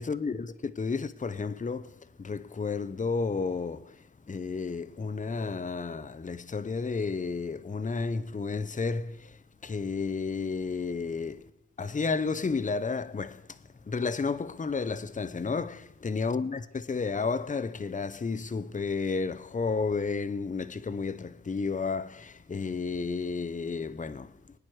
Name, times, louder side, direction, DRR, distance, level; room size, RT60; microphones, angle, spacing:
voice 1, 0.0-11.5 11.8-24.4, left 4 dB, 25° left, 0.7 m, -32 dB
24.0 x 9.5 x 4.8 m
cardioid pair, 85°, 29 cm